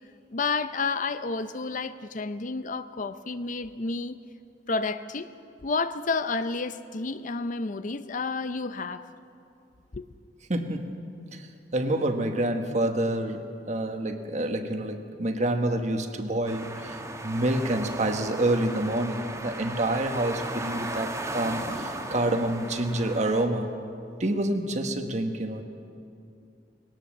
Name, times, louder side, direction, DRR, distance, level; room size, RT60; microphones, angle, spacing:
voice 1, 0.3-4.2 4.7-5.3 5.6-9.0 9.9-10.1, left 4 dB, 45° left, 12 dB, 0.6 m, -30 dB
voice 2, 10.5-10.9 11.3-23.7 24.2-25.6, right 1 dB, 40° right, 6 dB, 1.4 m, -28 dB
sound 1, 16.5-23.5, right 1 dB, 15° right, 1.6 m, -36 dB
19.5 x 18.5 x 7.4 m, 2.6 s
head